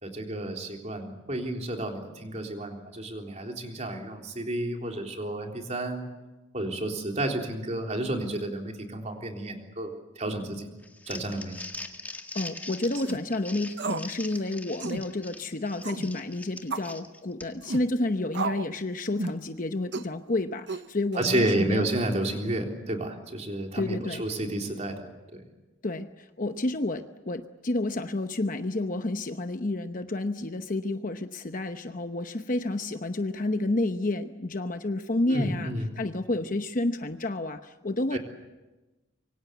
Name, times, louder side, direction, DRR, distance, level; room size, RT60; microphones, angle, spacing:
voice 1, 0.0-6.1 6.5-10.7 11.1-11.5 21.2-25.4 35.3-35.9 38.1-38.2, right 1 dB, 35° right, 2 dB, 3.6 m, -31 dB
Crumpling crinkling, 10.8-17.7, left 2 dB, 10° left, 1.8 m, -42 dB
voice 2, 12.3-21.9 23.8-24.2 25.8-38.2, left 2 dB, 40° left, 8 dB, 0.9 m, -30 dB
sound 1, 12.9-13.2 13.8-14.1 14.4-14.5 14.8-15.1 15.8-16.1 16.7-16.9 17.6-17.9 18.3-18.7 19.2-19.4 19.9-20.1 20.7-21.2, right 4 dB, 60° right, 0.8 m, -33 dB
26.0 x 24.0 x 8.2 m, 1.1 s
head